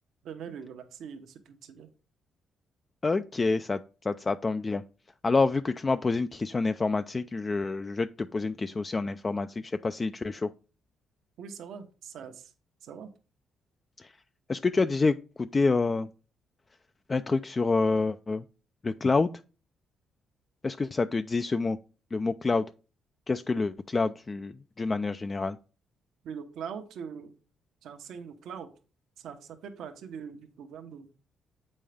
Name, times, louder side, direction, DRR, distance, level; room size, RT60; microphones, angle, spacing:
voice 1, 0.2-1.9 11.4-12.5 12.8-13.1 26.2-27.3 27.8-28.7 29.2-31.1, right 7 dB, 75° right, 7 dB, 1.0 m, -42 dB
voice 2, 3.0-4.8 5.2-10.5 14.0-14.1 14.5-16.1 17.1-18.4 18.8-19.3 20.6-21.8 22.1-22.7 23.3-25.6, left 3 dB, 30° left, 10 dB, 0.4 m, -27 dB
7.5 x 5.4 x 3.4 m, 0.35 s
cardioid pair, 90°, 0 cm